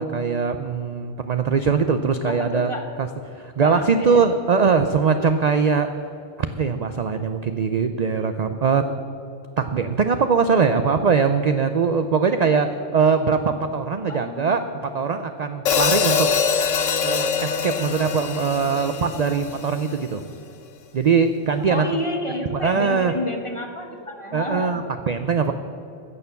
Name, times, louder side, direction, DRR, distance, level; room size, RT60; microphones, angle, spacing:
voice 1, 0.0-2.7 3.0-5.9 6.4-8.8 9.6-16.3 17.0-20.2 20.9-21.9 22.5-23.1 24.3-25.5, right 5 dB, 55° right, 8 dB, 0.4 m, -21 dB
voice 2, 2.2-2.8 3.6-4.2 14.1-14.5 21.7-24.8, left 1 dB, 25° left, 3 dB, 1.2 m, -30 dB
Hi-hat, 15.7-19.8, left 6 dB, 75° left, 1.2 m, -23 dB
Bowed string instrument, 16.6-20.7, left 6 dB, 55° left, 0.8 m, -39 dB
15.5 x 6.9 x 6.9 m, 2.7 s
omnidirectional pair, 1.3 m